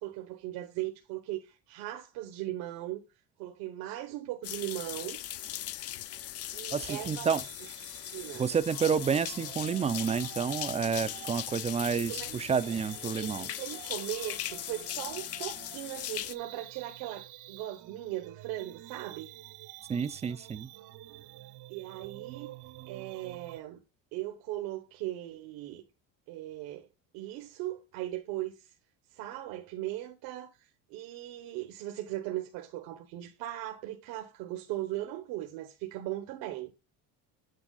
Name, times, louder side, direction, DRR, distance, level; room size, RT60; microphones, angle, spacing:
voice 1, 0.0-3.0 3.4-5.2 6.5-7.3 8.1-8.5 11.9-12.8 13.2-19.3 21.7-22.5 22.9-23.8 24.1-25.8 26.3-26.9 27.1-28.7 29.1-36.7, right 14 dB, 75° right, 1.2 m, -38 dB
sound 1, 4.4-16.3, left 12 dB, 45° left, 0.6 m, -39 dB
voice 2, 6.7-7.4 8.4-13.5 19.9-20.7, right 6 dB, 20° right, 0.4 m, -30 dB
sound 2, 6.9-23.6, right 16 dB, 60° right, 0.7 m, -49 dB
8.8 x 4.5 x 4.0 m
cardioid pair, 130°, 36 cm